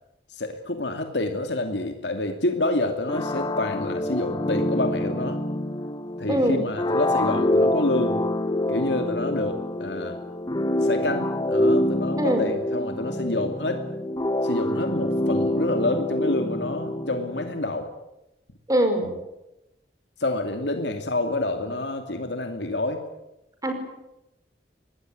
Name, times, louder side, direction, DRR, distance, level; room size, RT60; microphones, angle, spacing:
voice 1, 0.3-5.4 6.2-8.2 8.7-10.2 10.8-13.9 14.4-17.9 20.2-23.0, left 2 dB, 75° left, 6 dB, 2.6 m, -28 dB
sound 1, 3.1-17.6, left 1 dB, 25° left, 1.2 m, -26 dB
voice 2, 6.3-6.6 12.2-12.5 18.7-19.1 23.6-23.7, right 1 dB, 20° right, 6 dB, 5.5 m, -22 dB
25.5 x 19.5 x 9.5 m, 0.92 s
head